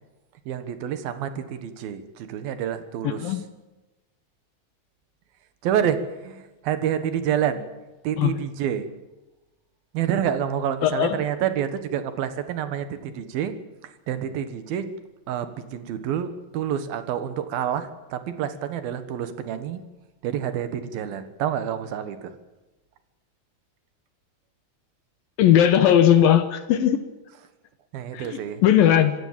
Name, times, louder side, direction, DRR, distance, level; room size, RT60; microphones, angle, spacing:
voice 1, 0.5-3.4 5.6-7.7 8.0-8.9 9.9-13.5 13.8-14.9 15.3-19.8 20.2-22.4 27.9-28.6, right 9 dB, 65° right, 10 dB, 3.0 m, -28 dB
voice 2, 10.8-11.2 25.4-27.0 28.1-29.2, left 10 dB, 70° left, 10 dB, 2.5 m, -18 dB
26.0 x 16.5 x 7.5 m, 1.1 s
omnidirectional pair, 4.9 m